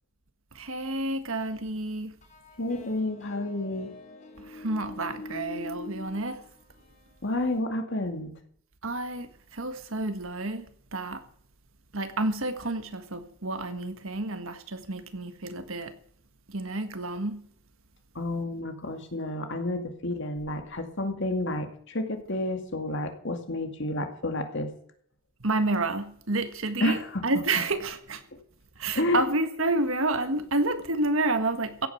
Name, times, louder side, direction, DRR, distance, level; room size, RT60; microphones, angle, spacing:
voice 1, 0.5-2.1 4.4-6.4 8.8-11.2 11.9-15.9 16.5-17.5 25.4-27.0 27.2-28.2 28.8-31.9, right 2 dB, 65° right, 1.6 m, -29 dB
sound 1, 2.2-7.4, left 2 dB, 35° left, 3.1 m, -44 dB
voice 2, 2.6-3.9 7.2-8.3 18.1-24.7 26.8-27.2 28.9-29.2, left 1 dB, 55° left, 2.3 m, -30 dB
16.0 x 9.2 x 7.1 m
head